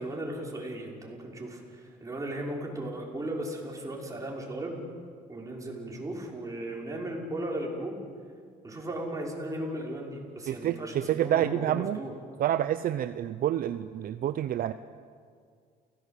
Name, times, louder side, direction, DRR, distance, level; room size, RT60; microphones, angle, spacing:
voice 1, 0.0-4.9 5.3-8.0 8.6-12.1, right 1 dB, 20° right, -1 dB, 5.9 m, -36 dB
voice 2, 10.5-12.0 12.4-14.7, right 11 dB, 60° right, 12 dB, 0.7 m, -28 dB
29.5 x 17.5 x 8.4 m, 2.1 s
cardioid pair, 110°, 17 cm